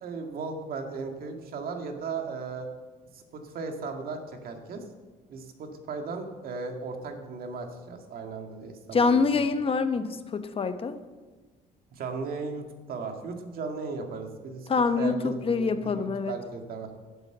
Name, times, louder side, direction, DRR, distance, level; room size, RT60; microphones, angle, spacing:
voice 1, 0.0-2.7 3.1-4.8 5.3-9.2 11.9-14.7 15.0-16.9, right 4 dB, 60° right, 4 dB, 2.1 m, -36 dB
voice 2, 8.9-11.0 14.7-16.3, left 4 dB, 35° left, 10 dB, 1.0 m, -25 dB
13.0 x 7.8 x 8.0 m, 1.3 s
cardioid pair, 110°, 17 cm